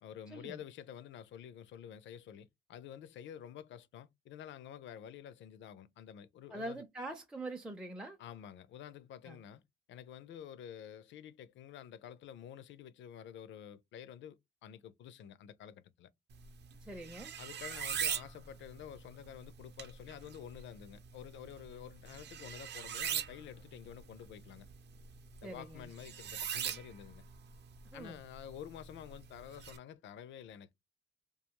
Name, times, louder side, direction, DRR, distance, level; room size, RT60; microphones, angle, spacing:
voice 1, 0.0-6.8 8.2-9.6 9.9-16.1 17.4-24.7 25.4-27.2 27.9-30.7, left 9 dB, 70° left, 0.5 m, -49 dB
voice 2, 6.5-8.2 9.2-9.4 16.8-17.3 25.4-25.9 27.9-28.2, right 1 dB, 5° right, 0.5 m, -44 dB
sound 1, 16.3-29.8, right 8 dB, 60° right, 0.7 m, -43 dB
2.4 x 2.3 x 2.8 m
cardioid pair, 90°, 20 cm